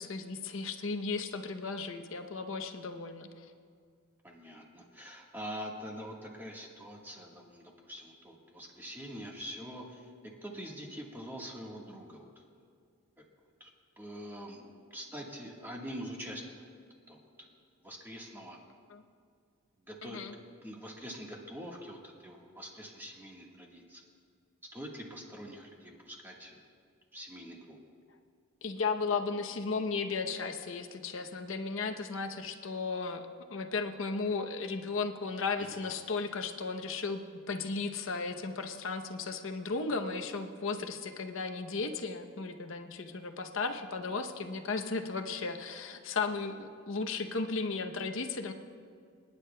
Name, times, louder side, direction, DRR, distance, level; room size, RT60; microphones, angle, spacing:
voice 1, 0.0-3.5 18.9-19.0 20.0-20.3 28.6-37.2 37.5-48.5, left 4 dB, 60° left, 6 dB, 0.8 m, -35 dB
voice 2, 4.2-12.4 13.6-13.7 14.0-16.5 17.1-17.3 17.8-18.6 19.9-20.3 20.6-24.0 24.7-26.6 27.1-27.8 35.6-35.8, equal, 10° right, -2 dB, 1.4 m, -44 dB
27.5 x 9.9 x 2.2 m, 2.2 s
head